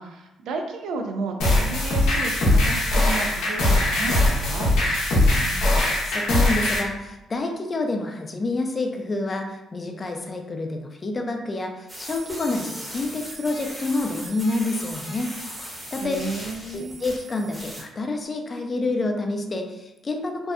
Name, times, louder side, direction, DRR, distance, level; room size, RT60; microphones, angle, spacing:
voice 1, 0.0-4.7 16.0-17.0, right 3 dB, 80° right, 4 dB, 0.3 m, -32 dB
sound 1, 1.4-6.8, left 1 dB, 90° left, 0.6 m, -21 dB
voice 2, 5.5-5.8 6.1-15.3 15.9-16.2 16.7-20.5, left 2 dB, 35° left, 3 dB, 0.3 m, -28 dB
sound 2, 11.9-17.8, equal, 15° right, 0.7 m, -38 dB
2.6 x 2.1 x 2.4 m, 0.94 s
cardioid pair, 90°, 0 cm